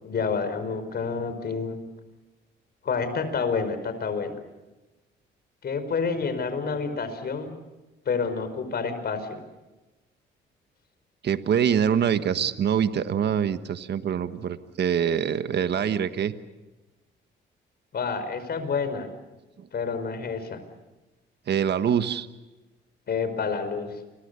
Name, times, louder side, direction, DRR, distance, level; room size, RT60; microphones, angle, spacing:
voice 1, 0.0-1.8 2.8-4.4 5.6-7.5 8.1-9.4 17.9-19.1 19.7-20.6 23.1-23.9, left 5 dB, 55° left, 10 dB, 5.1 m, -28 dB
voice 2, 11.2-16.3 19.6-19.7 21.5-22.3, right 8 dB, 60° right, 11 dB, 1.4 m, -24 dB
29.5 x 23.5 x 6.9 m, 1.1 s
cardioid pair, 90°, 20 cm